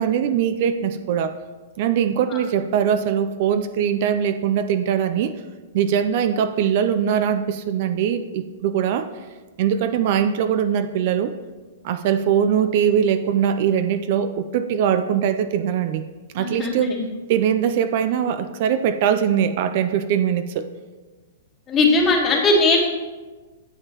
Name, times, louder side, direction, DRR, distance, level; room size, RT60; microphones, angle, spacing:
voice 1, 0.0-1.3 1.8-5.3 5.7-9.1 9.6-11.3 11.8-16.0 16.3-17.0 17.3-20.7, right 8 dB, 50° right, 11 dB, 0.4 m, -21 dB
voice 2, 16.4-17.0 21.7-22.8, left 3 dB, 20° left, 0 dB, 1.4 m, -19 dB
9.8 x 7.1 x 2.9 m, 1.3 s
hypercardioid pair, 145°, 0 cm